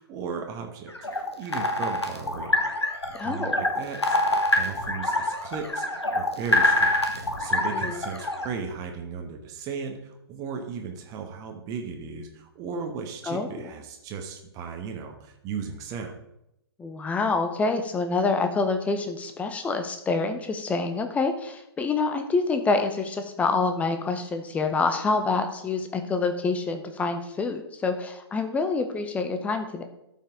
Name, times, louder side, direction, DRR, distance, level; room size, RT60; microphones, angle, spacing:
voice 1, 0.0-2.6 3.0-4.2 4.5-16.1, right 5 dB, 25° right, 3 dB, 1.2 m, -36 dB
sound 1, 0.9-8.4, left 2 dB, 80° left, 1.5 m, -25 dB
voice 2, 3.2-3.6 7.7-8.0 13.3-13.5 16.8-29.8, left 4 dB, 10° left, 7 dB, 0.8 m, -27 dB
13.0 x 5.7 x 3.7 m, 0.83 s
figure-of-eight pair, 115°, 14 cm